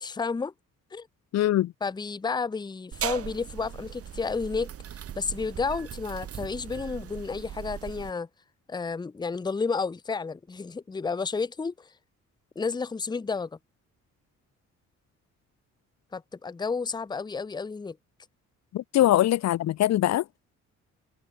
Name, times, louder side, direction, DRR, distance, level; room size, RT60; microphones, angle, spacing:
voice 1, 0.0-0.5 0.9-1.1 1.8-4.7 5.2-8.3 8.7-11.7 12.6-13.5 16.1-18.0 19.0-19.1, left 4 dB, 15° left, 0.6 m, -31 dB
voice 2, 1.3-1.7 18.7-20.2, left 13 dB, 60° left, 0.6 m, -22 dB
sound 1, 2.9-8.1, right 9 dB, 50° right, 1.1 m, -38 dB
cardioid pair, 90°, 30 cm